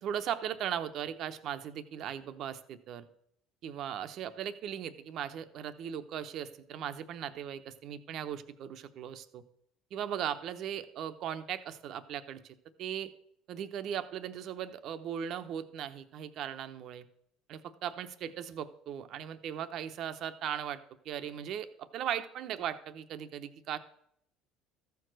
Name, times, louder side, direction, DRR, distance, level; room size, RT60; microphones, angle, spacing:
voice 1, 0.0-3.1 3.6-9.4 9.9-13.1 13.5-17.0 17.5-21.7 21.9-23.8, right 9 dB, 60° right, 10 dB, 0.8 m, -38 dB
14.0 x 4.7 x 6.3 m, 0.72 s
supercardioid pair, 95°, 0 cm